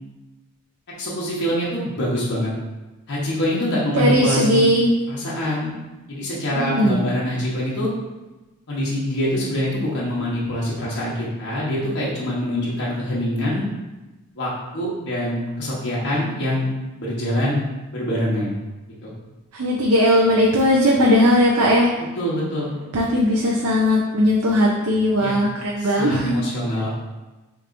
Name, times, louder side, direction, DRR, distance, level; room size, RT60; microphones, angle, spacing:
voice 1, 1.0-2.5 3.1-4.7 5.1-5.8 6.1-7.9 8.7-13.7 14.4-16.7 17.0-17.6 17.9-18.5 19.0-19.1 21.0-21.3 22.2-22.8 25.2-25.4 25.8-26.9, left 1 dB, 55° left, -7 dB, 1.0 m, -24 dB
voice 2, 3.9-4.9 6.5-7.0 19.5-21.9 22.9-26.4, equal, 85° right, -2 dB, 0.6 m, -18 dB
6.6 x 3.0 x 2.6 m, 1.1 s
head